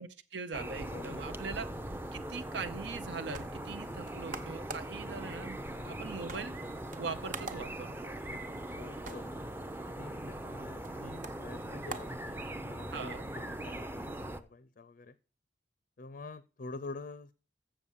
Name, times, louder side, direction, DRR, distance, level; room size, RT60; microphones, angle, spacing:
voice 1, 0.0-1.7 2.1-6.5 7.0-8.2 12.9-13.2, right 4 dB, 85° right, 9 dB, 0.6 m, -41 dB
sound 1, 0.5-14.4, right 1 dB, 10° right, 0.5 m, -41 dB
voice 2, 0.8-1.2 3.7-4.0 5.7-6.0 8.3-9.3 9.8-15.2 16.0-17.3, left 3 dB, 50° left, 14 dB, 0.5 m, -47 dB
sound 2, 3.3-12.9, right 3 dB, 45° right, 1.0 m, -49 dB
7.4 x 6.8 x 7.2 m, 0.36 s
head